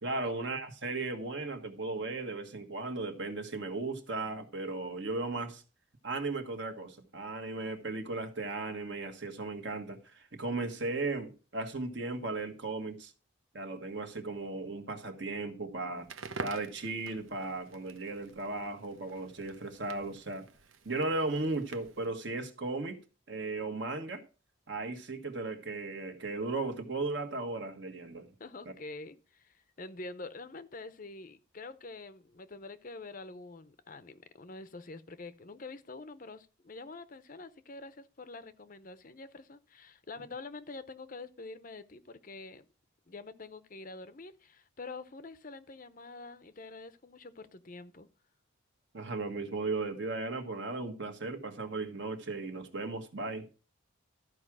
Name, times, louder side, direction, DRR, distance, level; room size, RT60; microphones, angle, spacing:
voice 1, 0.0-5.6 6.0-13.1 13.5-16.1 16.4-20.4 20.8-23.0 23.3-24.2 24.7-28.3 48.9-53.5, right 3 dB, 60° right, 1.5 m, -36 dB
Crackle, 16.0-22.1, right 4 dB, 75° right, 0.9 m, -47 dB
voice 2, 28.4-42.6 43.1-48.1, left 3 dB, 40° left, 0.6 m, -46 dB
13.0 x 4.8 x 6.1 m
head